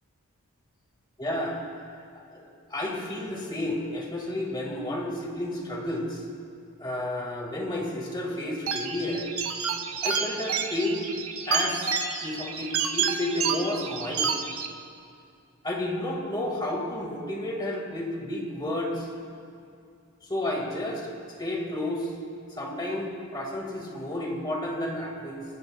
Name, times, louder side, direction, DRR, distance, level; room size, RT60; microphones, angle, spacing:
voice 1, 1.2-1.6 2.3-6.2 6.8-9.3 10.0-11.1 11.5-11.9 12.2-14.4 15.6-19.1 20.3-21.1 21.4-22.1 22.5-25.4, left 1 dB, 20° left, -1 dB, 1.8 m, -31 dB
sound 1, 8.7-14.7, right 6 dB, 85° right, 1.1 m, -29 dB
26.5 x 15.0 x 2.3 m, 2.4 s
head